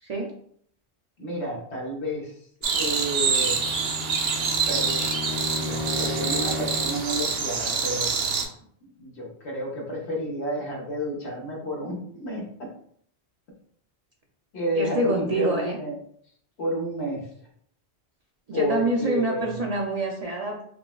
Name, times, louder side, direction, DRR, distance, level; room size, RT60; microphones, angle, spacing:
voice 1, 1.2-2.4 2.8-3.6 4.7-5.0 5.5-8.1 8.8-12.7 14.5-15.9 16.6-17.3 18.5-19.6, equal, 90° left, -2 dB, 1.3 m, -31 dB
sound 1, 2.6-8.4, right 5 dB, 75° right, 0.9 m, -26 dB
Bowed string instrument, 3.2-7.1, left 2 dB, 55° left, 0.8 m, -34 dB
voice 2, 14.8-15.8 18.5-20.6, right 2 dB, 50° right, -1 dB, 0.5 m, -26 dB
5.3 x 2.1 x 2.2 m, 0.63 s
omnidirectional pair, 1.1 m